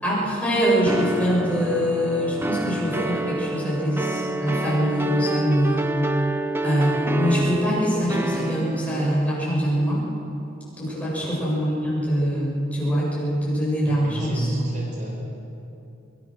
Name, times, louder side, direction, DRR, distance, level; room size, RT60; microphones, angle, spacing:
voice 1, 0.0-5.9 6.6-10.0 10.8-14.5, equal, 5° left, -6 dB, 7.7 m, -23 dB
sound 1, 0.9-9.1, right 1 dB, 10° right, 0.8 m, -28 dB
voice 2, 13.8-15.1, right 1 dB, 40° right, -2 dB, 5.0 m, -29 dB
24.0 x 23.5 x 6.5 m, 2.8 s
head